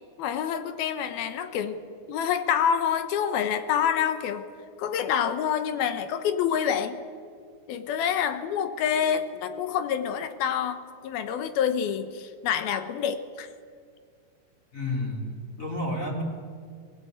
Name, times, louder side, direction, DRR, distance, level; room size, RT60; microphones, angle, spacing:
voice 1, 0.2-1.8 2.1-4.5 4.8-7.0 7.7-13.5, left 8 dB, 70° left, 10 dB, 2.8 m, -27 dB
voice 2, 14.7-16.2, left 1 dB, 20° left, 0 dB, 3.1 m, -31 dB
21.0 x 19.5 x 9.3 m, 2.1 s
omnidirectional pair, 4.8 m